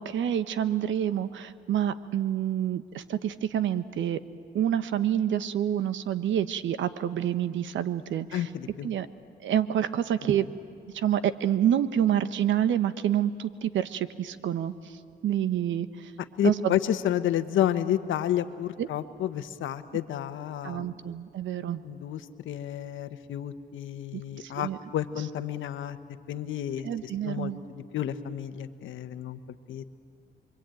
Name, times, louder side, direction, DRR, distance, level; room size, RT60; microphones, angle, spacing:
voice 1, 0.0-4.2 4.5-8.4 8.8-9.1 9.4-10.4 10.9-14.7 15.2-15.9 16.4-16.7 18.8-18.9 20.6-21.8 24.1-24.8 26.8-27.6, right 10 dB, 70° right, 13 dB, 1.1 m, -27 dB
voice 2, 8.3-8.9 16.4-21.0 21.8-26.0 26.3-29.4 29.7-29.8, left 11 dB, 75° left, 10 dB, 1.2 m, -30 dB
27.5 x 22.5 x 9.2 m, 2.3 s
cardioid pair, 90°, 20 cm